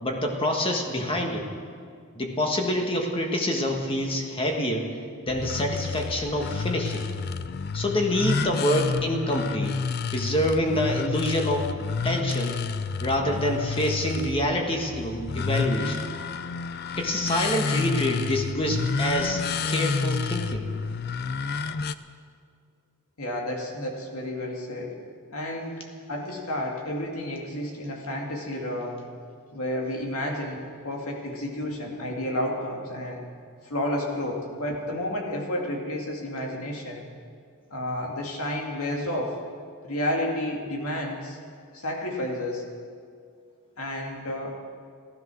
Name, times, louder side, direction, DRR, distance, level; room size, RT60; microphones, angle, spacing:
voice 1, 0.0-1.5 2.1-4.9 5.3-7.1 7.7-9.8 10.1-11.7 12.0-12.6 13.0-16.1 17.0-20.7, left 1 dB, 25° left, 2 dB, 1.6 m, -26 dB
sound 1, 5.3-21.9, left 5 dB, 45° left, 0.4 m, -30 dB
voice 2, 23.2-25.0 25.3-29.1 29.5-33.3 33.6-37.1 37.7-39.4 39.8-41.4 41.7-42.6 43.8-44.6, left 1 dB, 75° left, 0 dB, 2.5 m, -31 dB
15.0 x 13.5 x 6.3 m, 2.2 s
head